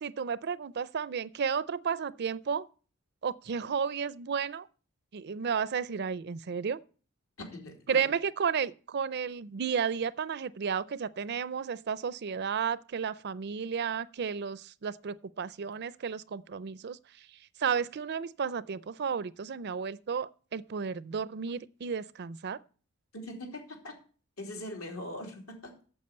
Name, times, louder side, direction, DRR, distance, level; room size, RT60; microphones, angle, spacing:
voice 1, 0.0-2.7 3.2-4.7 5.1-6.8 7.9-17.0 17.6-22.6, right 6 dB, 50° right, 0.5 m, -32 dB
voice 2, 7.4-8.1 23.1-23.9 24.4-25.7, left 1 dB, 80° left, 3.2 m, -41 dB
8.5 x 7.2 x 8.0 m
head